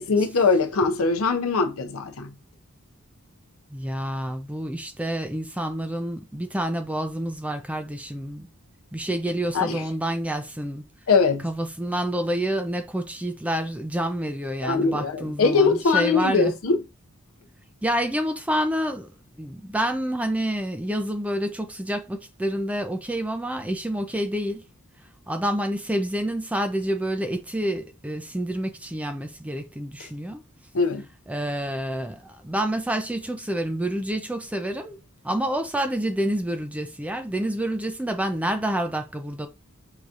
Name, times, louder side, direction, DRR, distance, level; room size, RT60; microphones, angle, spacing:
voice 1, 0.1-2.3 9.5-9.8 11.1-11.5 14.6-16.8 30.0-30.1 30.7-31.0, left 4 dB, 70° left, 0.6 m, -21 dB
voice 2, 3.7-8.5 8.9-10.8 11.4-16.5 17.8-19.1 19.4-24.6 25.3-30.4 31.3-35.0 35.2-39.5, right 1 dB, 5° right, 0.4 m, -28 dB
4.7 x 2.8 x 2.5 m
head